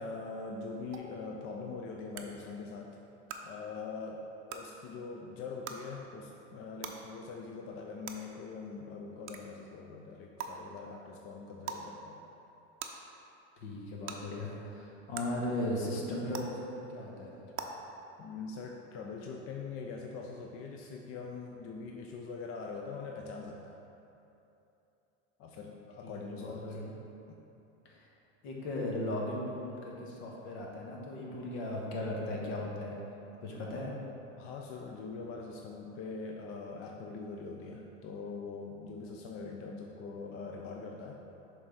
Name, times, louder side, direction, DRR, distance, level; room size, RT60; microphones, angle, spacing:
voice 1, 0.0-2.9 3.4-4.2 4.5-12.2 18.2-23.8 25.4-26.7 27.3-27.4 33.6-34.0 34.4-41.2, left 4 dB, 40° left, 1 dB, 0.5 m, -43 dB
sound 1, 0.9-1.0 2.1-2.2 3.3-3.4 4.5-4.6 5.6-5.8 6.8-6.9 8.0-8.1 9.3-9.4 10.4-10.5 11.6-11.8 12.8-12.9 14.1-14.2 15.1-15.2 16.3-16.4 17.5-17.6, right 9 dB, 35° right, 0.6 m, -39 dB
voice 2, 13.6-17.3 26.0-26.9 27.8-28.1 28.4-33.0 33.4-34.0, left 1 dB, 65° left, -2 dB, 1.5 m, -37 dB
6.4 x 3.8 x 4.7 m, 2.9 s
hypercardioid pair, 90°, 36 cm